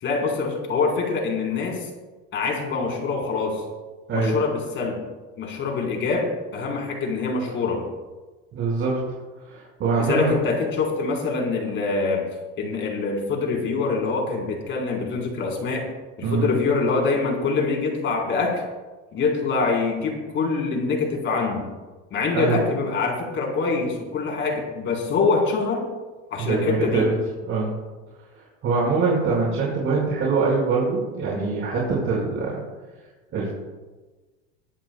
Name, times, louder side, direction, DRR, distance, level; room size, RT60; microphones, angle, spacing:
voice 1, 0.0-1.9 2.3-3.6 4.1-5.0 5.4-7.8 10.1-12.2 12.6-15.8 16.2-18.6 19.1-21.7 22.1-25.9 26.3-27.1, left 4 dB, 35° left, 0 dB, 4.2 m, -25 dB
voice 2, 8.5-9.1 9.4-10.3 16.2-16.5 22.3-22.6 26.4-27.1 27.5-27.8 28.3-32.6 33.3-33.5, right 4 dB, 40° right, -5 dB, 5.1 m, -23 dB
21.5 x 14.0 x 2.3 m, 1.2 s
cardioid pair, 145°, 33 cm